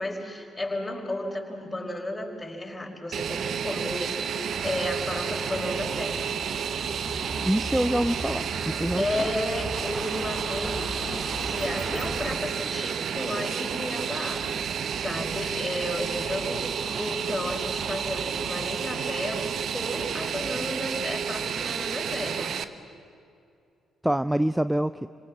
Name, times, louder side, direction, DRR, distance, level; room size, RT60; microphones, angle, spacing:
voice 1, 0.0-6.3 9.0-22.5, left 1 dB, 15° left, 1 dB, 5.3 m, -33 dB
Fixed-wing aircraft airplane, 3.1-22.6, right 7 dB, 55° right, 1.0 m, -31 dB
sound 1, 4.5-12.4, right 1 dB, 30° right, 3.3 m, -38 dB
voice 2, 7.4-9.3 24.0-25.1, right 1 dB, 5° right, 14 dB, 0.6 m, -26 dB
29.0 x 25.5 x 7.4 m, 2.5 s
figure-of-eight pair, 40°, 0 cm